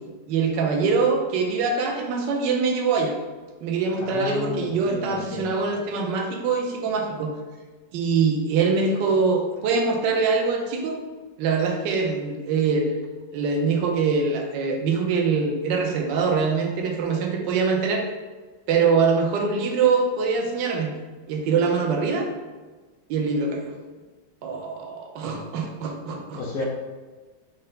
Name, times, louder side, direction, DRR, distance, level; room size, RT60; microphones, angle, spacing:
voice 1, 0.3-3.1 3.6-7.3 7.9-11.0 11.4-12.9 13.3-18.0 18.7-21.0 21.3-22.3 23.1-23.7 24.4-26.4, right 5 dB, 70° right, 1 dB, 1.2 m, -23 dB
voice 2, 4.0-5.5 26.3-26.7, left 3 dB, 75° left, -1 dB, 0.8 m, -32 dB
5.4 x 2.1 x 3.8 m, 1.3 s
omnidirectional pair, 2.2 m